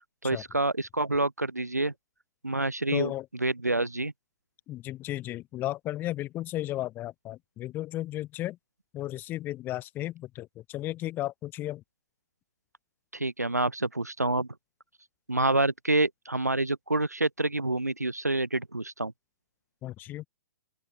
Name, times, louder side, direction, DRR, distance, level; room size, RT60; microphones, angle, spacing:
voice 1, 0.2-1.9 2.4-3.1 3.4-4.1 13.1-14.5 15.3-19.1, right 2 dB, 85° right, 1.6 m, -27 dB
voice 2, 2.9-3.3 4.7-8.6 8.9-11.8 19.8-20.3, left 15 dB, 20° left, 2.7 m, -34 dB
open air
figure-of-eight pair, 120°, 9 cm